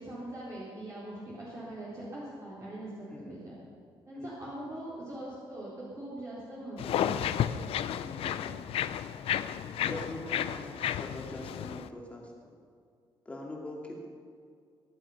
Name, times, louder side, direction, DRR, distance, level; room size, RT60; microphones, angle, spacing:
voice 1, 0.0-3.5 4.1-7.2, right 1 dB, 35° right, -8 dB, 3.9 m, -42 dB
sound 1, 6.8-11.9, left 10 dB, 85° left, 0.7 m, -32 dB
voice 2, 8.0-8.6 9.9-12.3 13.2-14.1, left 1 dB, 15° left, -2 dB, 2.5 m, -42 dB
23.0 x 11.0 x 5.7 m, 2.2 s
wide cardioid pair, 175°, 10 cm